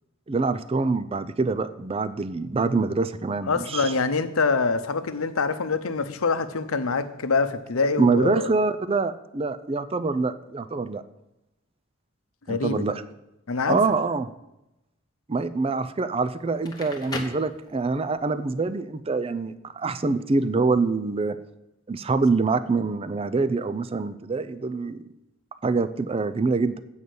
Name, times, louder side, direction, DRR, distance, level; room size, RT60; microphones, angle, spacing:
voice 1, 0.3-3.9 8.0-11.0 12.5-13.0 13.7-14.3 15.3-21.4 21.9-25.0 25.6-26.8, right 3 dB, 25° right, 12 dB, 0.4 m, -25 dB
voice 2, 3.5-8.5 12.5-12.8 13.5-13.8, left 4 dB, 85° left, 10 dB, 0.7 m, -25 dB
Crackle, 16.5-18.2, left 2 dB, 20° left, 1.0 m, -37 dB
8.3 x 5.4 x 7.8 m, 0.91 s
head